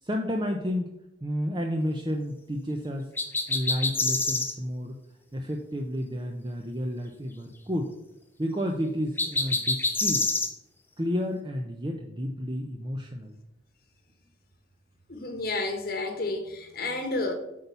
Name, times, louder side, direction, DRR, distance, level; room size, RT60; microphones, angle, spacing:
voice 1, 0.0-0.9 1.2-3.1 3.5-5.0 5.3-7.9 8.4-10.3 11.0-13.4, equal, 25° right, 2 dB, 0.7 m, -31 dB
sound 1, 3.2-4.5 9.2-10.5, left 3 dB, 10° left, 0.7 m, -26 dB
voice 2, 15.1-17.3, left 2 dB, 50° left, 4 dB, 1.2 m, -31 dB
8.5 x 4.1 x 6.8 m, 0.86 s
head